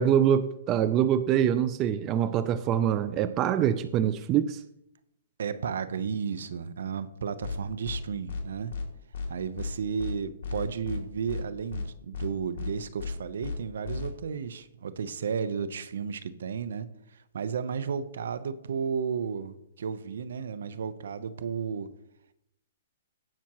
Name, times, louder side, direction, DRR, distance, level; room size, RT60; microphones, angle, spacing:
voice 1, 0.0-4.6, right 9 dB, 30° right, 0.4 m, -24 dB
voice 2, 5.4-8.7 9.3-21.9, right 6 dB, 70° right, 0.8 m, -33 dB
sound 1, 7.4-7.6 7.8-8.0 8.3-8.4 8.7-8.8 9.1-9.3 9.6-9.7 10.0-10.1 10.4-11.0 11.3-11.4 11.7-11.8 12.1-12.3 12.6-12.7 13.0-13.1 13.4-13.6 13.8-14.1, left 5 dB, 55° left, 2.7 m, -34 dB
16.5 x 5.9 x 3.0 m
hypercardioid pair, 135°, 0 cm